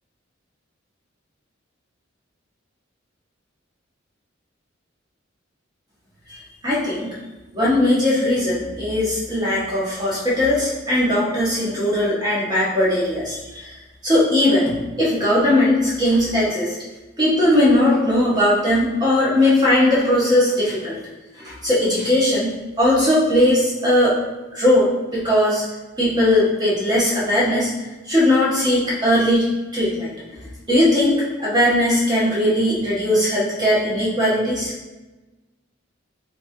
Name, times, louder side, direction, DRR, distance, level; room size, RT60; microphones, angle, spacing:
voice 1, 6.6-7.1 7.5-13.7 14.0-16.7 17.2-21.0 21.4-24.1 24.5-25.6 26.0-27.7 28.1-30.1 30.7-34.7, left 1 dB, 20° right, -7 dB, 1.1 m, -19 dB
3.3 x 3.2 x 2.6 m, 1.1 s
head